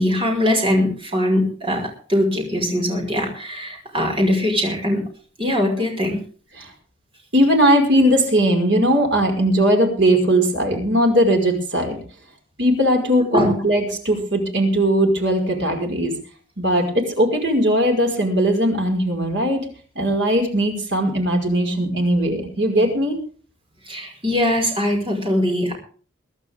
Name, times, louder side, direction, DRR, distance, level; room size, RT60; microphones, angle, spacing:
voice 1, 0.0-5.0 5.4-6.2 13.3-13.5 23.9-25.7, left 1 dB, 25° right, 1 dB, 5.5 m, -21 dB
voice 2, 7.3-12.0 12.6-16.2 16.6-19.7 20.0-23.2, equal, 60° right, 3 dB, 5.3 m, -19 dB
23.0 x 11.5 x 3.7 m, 0.42 s
head